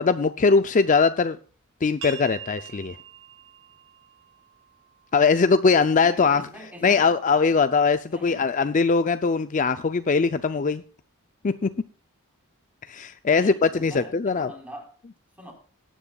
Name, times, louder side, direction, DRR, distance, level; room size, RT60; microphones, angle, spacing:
voice 1, 0.0-1.4 1.8-3.0 5.1-6.4 6.8-10.8 11.4-11.7 12.9-14.5, left 4 dB, 35° left, 11 dB, 0.5 m, -21 dB
sound 1, 2.0-7.4, right 8 dB, 70° right, 6.8 m, -45 dB
voice 2, 6.0-7.1 8.0-8.5 13.3-14.9 15.4-15.5, equal, 5° right, 2 dB, 4.2 m, -43 dB
18.5 x 10.0 x 2.3 m, 0.40 s
head